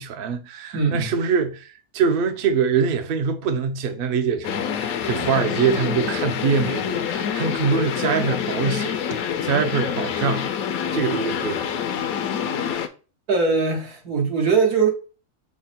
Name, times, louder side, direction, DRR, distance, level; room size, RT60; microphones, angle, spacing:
voice 1, 0.0-10.5 10.9-11.6, right 6 dB, 60° right, 0.6 m, -24 dB
voice 2, 0.7-1.1 13.3-14.9, right 5 dB, 90° right, 1.8 m, -21 dB
sound 1, 4.4-12.9, left 8 dB, 75° left, 1.0 m, -26 dB
5.8 x 2.2 x 4.0 m
omnidirectional pair, 1.5 m